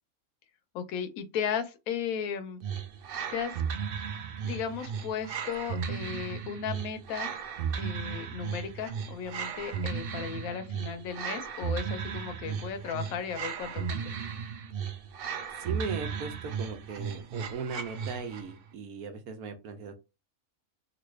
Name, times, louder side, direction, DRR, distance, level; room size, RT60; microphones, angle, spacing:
voice 1, 0.7-2.6 3.3-3.6 4.4-7.4 7.8-14.1, left 7 dB, 80° left, 1.0 m, -35 dB
sound 1, 2.6-18.5, right 7 dB, 60° right, 0.6 m, -35 dB
voice 2, 15.6-20.0, right 5 dB, 80° right, 1.2 m, -38 dB
3.1 x 2.6 x 3.1 m
omnidirectional pair, 1.5 m